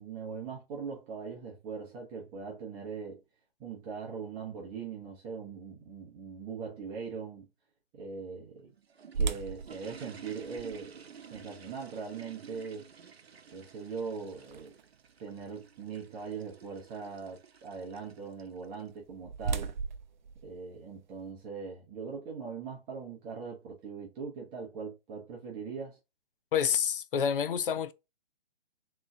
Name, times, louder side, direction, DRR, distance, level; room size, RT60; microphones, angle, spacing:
voice 1, 0.0-3.2 3.6-7.5 7.9-8.7 9.2-12.9 13.5-14.7 15.2-19.7 20.4-26.0, right 5 dB, 15° right, 0.8 m, -41 dB
sound 1, 8.6-18.9, right 7 dB, 80° right, 0.8 m, -52 dB
sound 2, 9.1-15.1 15.6-15.7 16.3-16.6 18.6-21.3, right 5 dB, 45° right, 0.5 m, -38 dB
voice 2, 26.5-27.9, left 8 dB, 60° left, 0.7 m, -28 dB
3.8 x 3.1 x 3.4 m
hypercardioid pair, 145°, 31 cm